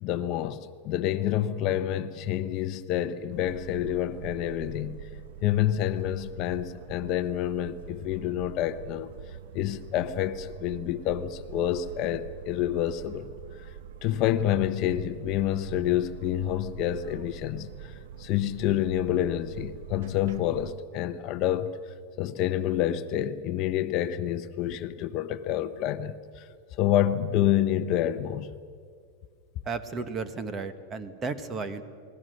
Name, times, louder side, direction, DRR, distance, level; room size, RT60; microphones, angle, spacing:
voice 1, 0.0-5.0 5.4-9.1 9.5-13.3 13.6-13.7 14.0-21.7 22.2-26.5 26.8-28.5, left 11 dB, 40° left, 0.8 m, -28 dB
sound 1, 3.3-20.7, right 8 dB, 75° right, 1.0 m, -45 dB
voice 2, 29.6-31.8, right 4 dB, 20° right, 1.3 m, -34 dB
29.0 x 21.0 x 6.4 m
supercardioid pair, 160°, 0 cm